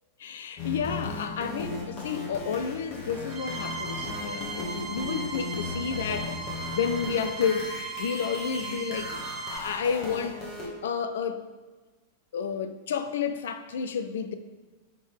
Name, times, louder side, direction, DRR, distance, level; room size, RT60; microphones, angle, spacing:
voice 1, 0.2-7.7 8.0-10.4 10.8-11.4 12.3-14.3, left 6 dB, 60° left, 0.5 m, -31 dB
sound 1, 0.6-10.7, left 3 dB, 40° left, 1.7 m, -37 dB
sound 2, 3.3-9.6, right 3 dB, 5° right, 2.0 m, -37 dB
10.0 x 3.7 x 3.4 m
figure-of-eight pair, 90°, 0 cm